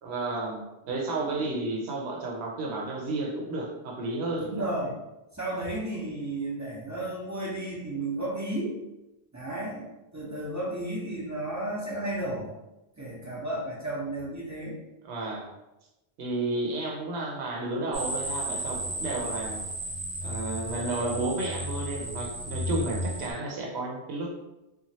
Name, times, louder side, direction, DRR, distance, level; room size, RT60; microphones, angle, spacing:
voice 1, 0.0-4.7 15.0-15.5 16.2-19.6 20.2-24.3, right 2 dB, 85° right, -1 dB, 0.9 m, -32 dB
voice 2, 4.4-5.0 5.3-8.8 9.3-9.9 10.1-12.5 13.0-14.8, right 1 dB, 20° right, -5 dB, 0.5 m, -33 dB
sound 1, 17.9-23.3, right 1 dB, 55° right, 0.7 m, -34 dB
3.0 x 2.2 x 2.7 m, 0.97 s
omnidirectional pair, 1.1 m